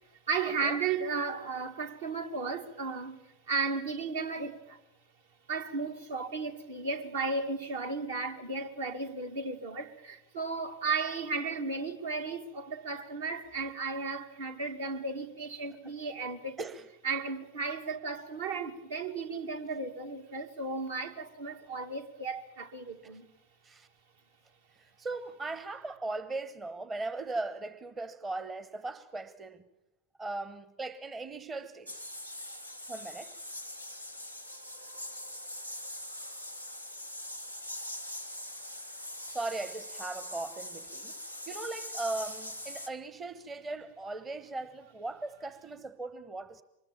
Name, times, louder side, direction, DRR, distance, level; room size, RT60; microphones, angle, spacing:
voice 1, 0.3-3.2 3.5-4.8 5.5-16.6 17.0-23.3, right 4 dB, 60° right, 2.2 m, -34 dB
voice 2, 24.8-29.6 30.2-32.0 32.9-33.4 39.3-41.1 41.5-46.6, right 3 dB, 20° right, 1.0 m, -38 dB
sound 1, 31.9-42.9, left 1 dB, 90° right, 1.7 m, -42 dB
24.5 x 21.0 x 7.4 m
figure-of-eight pair, 90°, 0 cm